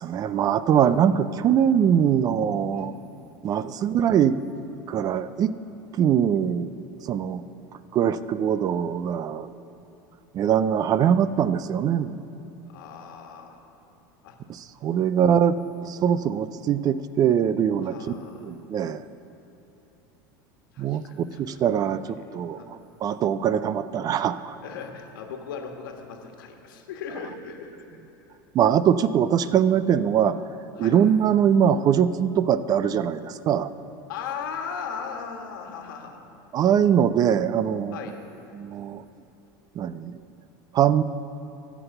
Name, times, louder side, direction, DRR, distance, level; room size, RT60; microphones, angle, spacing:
voice 1, 0.0-2.9 3.4-4.4 4.9-5.5 5.9-6.7 7.0-7.4 7.9-9.5 10.3-12.2 14.5-15.6 15.8-18.1 18.5-19.0 20.8-24.6 28.5-30.4 30.8-33.7 36.5-38.0 38.5-39.0 39.8-40.1 40.7-41.0, right 9 dB, 35° right, 14 dB, 0.4 m, -22 dB
voice 2, 12.7-13.6 14.2-14.4 17.8-18.5 20.7-21.6 22.5-22.7 24.6-27.8 30.8-31.0 34.1-36.2 37.9-38.2, left 6 dB, 85° left, 3 dB, 1.5 m, -38 dB
13.5 x 6.0 x 7.9 m, 3.0 s
supercardioid pair, 110°, 11 cm